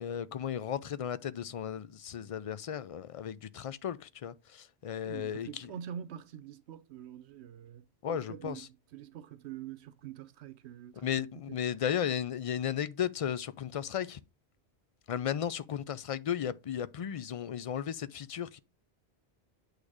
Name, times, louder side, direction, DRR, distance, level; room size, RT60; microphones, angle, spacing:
voice 1, 0.0-4.3 4.8-5.7 8.0-8.7 11.0-14.2 15.1-18.6, left 9 dB, 55° left, 0.4 m, -35 dB
voice 2, 5.0-11.6, right 9 dB, 85° right, 0.9 m, -45 dB
8.5 x 3.3 x 4.8 m
omnidirectional pair, 1.1 m